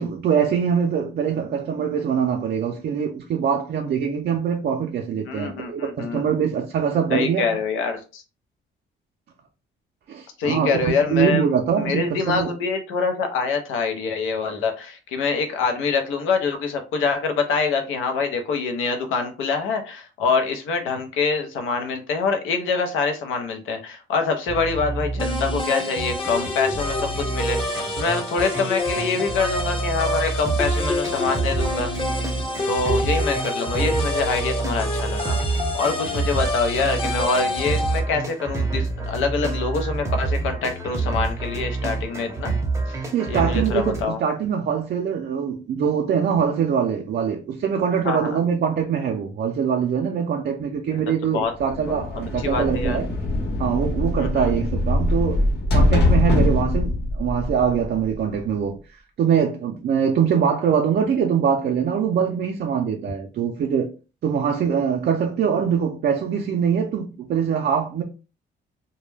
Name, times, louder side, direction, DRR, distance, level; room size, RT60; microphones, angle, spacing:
voice 1, 0.0-7.5 10.1-12.5 43.1-53.1 53.6-55.4 55.7-63.9 64.2-68.0, right 7 dB, 55° right, 0.4 m, -23 dB
voice 2, 5.3-6.3 7.1-8.2 10.4-11.5 11.8-31.9 32.6-35.4 35.7-42.5 43.3-44.2 48.0-48.4 50.9-51.5 51.8-53.0 54.2-54.5, left 4 dB, 90° left, 0.6 m, -25 dB
sound 1, 24.5-44.0, right 3 dB, 15° right, 0.6 m, -28 dB
sound 2, 25.2-38.0, left 1 dB, 25° left, 0.8 m, -28 dB
sound 3, 51.6-58.3, left 1 dB, 60° left, 1.0 m, -22 dB
2.2 x 2.1 x 3.2 m
cardioid pair, 90°, 20 cm